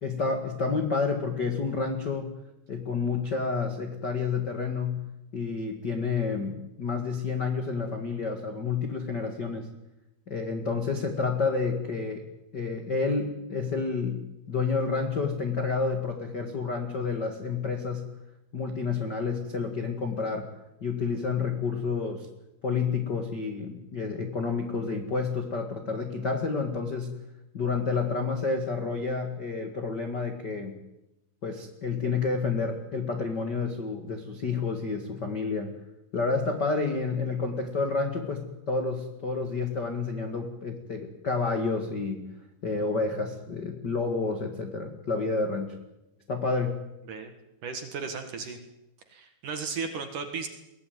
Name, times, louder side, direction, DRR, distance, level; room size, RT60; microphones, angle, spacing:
voice 1, 0.0-2.3 2.7-5.0 5.3-9.7 10.3-12.2 12.5-14.2 14.5-18.0 18.5-20.5 20.8-22.3 22.6-27.1 27.5-30.8 31.4-35.7 36.1-42.3 42.6-45.7 46.3-46.8, left 4 dB, 50° left, 5 dB, 1.2 m, -29 dB
voice 2, 47.6-48.6 49.1-50.5, right 5 dB, 55° right, 7 dB, 2.7 m, -35 dB
22.0 x 18.0 x 9.4 m, 0.93 s
omnidirectional pair, 5.3 m